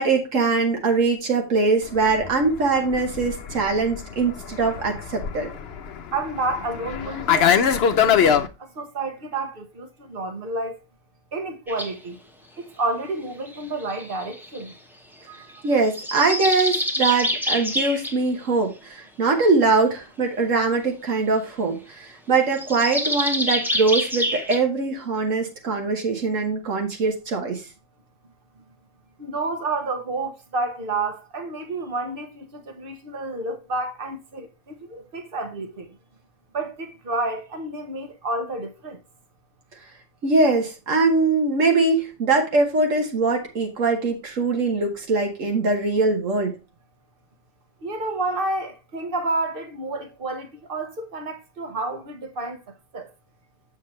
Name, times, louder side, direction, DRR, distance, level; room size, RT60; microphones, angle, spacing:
voice 1, 0.0-5.5 15.6-27.6 40.2-46.5, right 3 dB, 80° right, 1.6 m, -22 dB
Fixed-wing aircraft airplane, 2.0-8.5, left 8 dB, 60° left, 0.9 m, -23 dB
voice 2, 6.1-10.8 11.3-12.2 12.6-14.8 15.3-15.5 29.2-35.9 36.5-39.0 47.8-52.6 52.9-53.1, right 2 dB, 45° right, 1.3 m, -30 dB
sound 1, 11.7-11.9 13.5-14.7 15.9-18.2 22.6-24.6, equal, ahead, 0.9 m, -26 dB
7.4 x 6.5 x 3.1 m
omnidirectional pair, 1.3 m